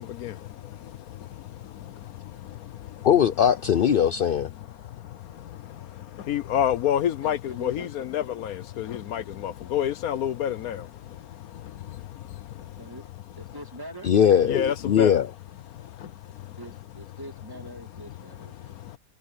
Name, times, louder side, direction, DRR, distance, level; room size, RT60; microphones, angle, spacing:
voice 1, 3.0-4.5 14.0-15.3, left 8 dB, 55° left, 0.6 m, -20 dB
voice 2, 6.3-8.9 9.1-10.8 14.5-15.1, left 10 dB, 70° left, 1.2 m, -27 dB
voice 3, 7.2-7.9 12.8-13.0 13.4-14.1 16.6-19.0, right 1 dB, 15° right, 2.3 m, -43 dB
omnidirectional pair, 1.6 m